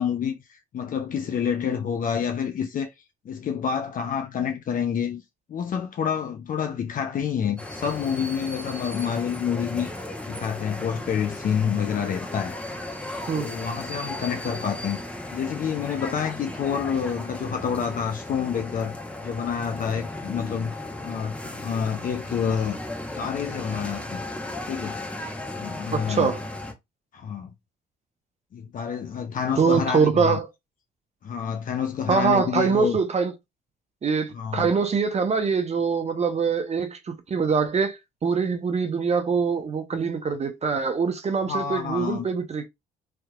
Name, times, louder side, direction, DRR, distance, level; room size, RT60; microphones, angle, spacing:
voice 1, 0.0-2.9 3.3-5.2 5.5-9.9 10.2-12.6 13.3-15.0 15.3-19.0 19.2-20.8 21.0-22.8 23.2-24.2 24.7-25.3 25.6-26.3 27.1-27.5 28.5-30.4 31.2-33.0 34.3-34.7 41.5-42.2, left 7 dB, 50° left, 0.6 m, -28 dB
sound 1, 7.6-26.7, left 1 dB, 5° left, 1.1 m, -36 dB
voice 2, 25.9-26.4 29.6-30.5 32.1-33.3 34.0-42.7, right 5 dB, 35° right, 0.7 m, -24 dB
3.3 x 2.8 x 2.4 m
supercardioid pair, 60°, 18 cm